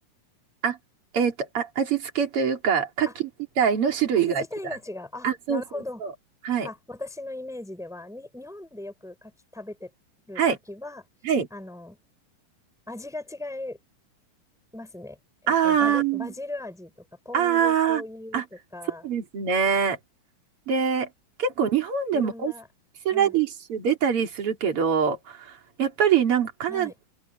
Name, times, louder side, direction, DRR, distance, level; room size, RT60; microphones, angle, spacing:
voice 1, 1.1-3.1 3.6-4.4 5.2-5.6 6.0-6.1 6.4-6.7 10.4-10.6 11.2-11.5 15.5-16.3 17.3-18.0 18.3-18.4 19.0-20.0 20.7-21.1 21.4-22.5 23.1-26.9, right 7 dB, 45° right, 3.7 m, -24 dB
voice 2, 4.2-6.0 6.6-9.9 10.3-10.4 10.7-11.1 11.5-12.0 12.9-13.8 14.7-15.2 15.4-18.4 18.7-19.1 22.1-22.7 23.1-23.3 26.7-26.9, left 2 dB, ahead, 5.0 m, -38 dB
open air
omnidirectional pair, 3.9 m